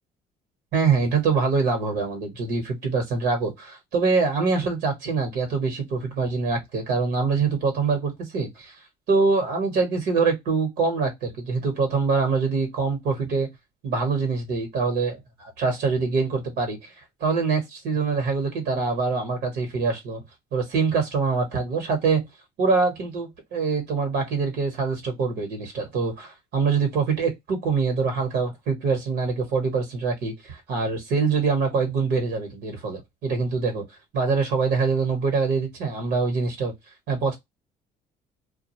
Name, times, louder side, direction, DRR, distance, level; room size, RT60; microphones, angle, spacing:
voice 1, 0.7-8.7 9.1-13.5 13.8-20.2 20.5-22.2 22.6-33.8 34.1-36.7 37.1-37.3, right 4 dB, 75° right, 1.0 m, -24 dB
2.4 x 2.2 x 2.8 m
cardioid pair, 110°, 17 cm